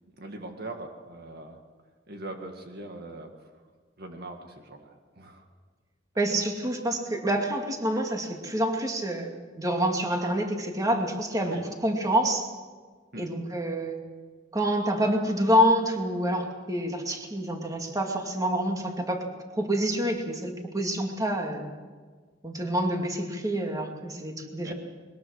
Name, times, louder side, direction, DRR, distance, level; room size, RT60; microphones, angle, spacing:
voice 1, 0.2-1.6 2.1-3.3 4.0-5.4 11.4-11.6 13.1-13.3 24.6-24.7, right 2 dB, 55° right, 4 dB, 1.9 m, -41 dB
voice 2, 6.2-12.5 13.2-14.0 14.5-19.2 19.5-21.7 22.4-24.7, equal, 20° right, 2 dB, 2.4 m, -27 dB
22.0 x 20.5 x 6.5 m, 1.5 s
head